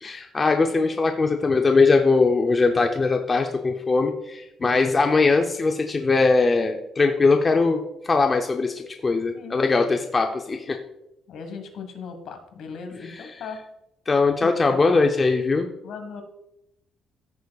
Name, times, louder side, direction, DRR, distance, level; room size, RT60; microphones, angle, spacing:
voice 1, 0.0-10.8 13.1-13.2 14.1-15.7, left 3 dB, 20° left, 3 dB, 0.5 m, -21 dB
voice 2, 9.3-10.0 11.3-13.6 14.4-15.1 15.8-16.2, left 5 dB, 60° left, 6 dB, 1.5 m, -38 dB
14.5 x 6.6 x 2.3 m, 0.86 s
cardioid pair, 175°, 0 cm